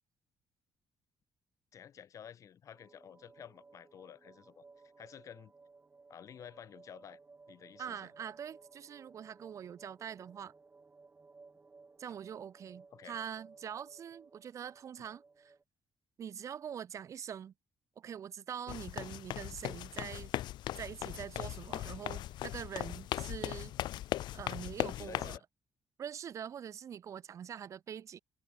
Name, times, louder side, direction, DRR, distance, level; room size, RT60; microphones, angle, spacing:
voice 1, 1.7-4.6 5.0-5.5 6.1-7.2 7.5-8.1 12.9-13.2 25.0-25.4, left 9 dB, 45° left, 4.4 m, -51 dB
sound 1, 2.7-15.6, right 4 dB, 20° right, 1.9 m, -59 dB
voice 2, 7.8-10.5 12.0-15.5 16.2-17.5 18.0-20.3 20.8-23.7 24.3-25.4 26.0-28.2, right 8 dB, 45° right, 2.6 m, -44 dB
sound 2, 18.7-25.4, left 14 dB, 80° left, 0.7 m, -38 dB
cardioid pair, 170°, 8 cm